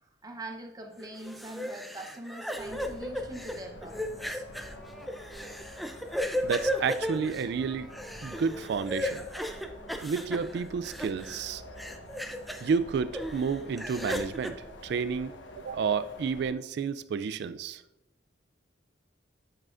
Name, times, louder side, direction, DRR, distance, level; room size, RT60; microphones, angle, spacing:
voice 1, 0.2-4.4, right 1 dB, 20° right, 4 dB, 0.8 m, -43 dB
sound 1, 1.0-11.5 11.8-12.7 13.1-14.5, equal, ahead, 0.4 m, -35 dB
sound 2, 2.6-16.5, left 1 dB, 85° left, 1.0 m, -47 dB
voice 2, 6.4-7.9 8.2-9.2 10.0-11.6 12.6-14.5 14.8-17.8, right 5 dB, 60° right, 12 dB, 0.3 m, -30 dB
8.6 x 6.5 x 2.5 m, 0.89 s
head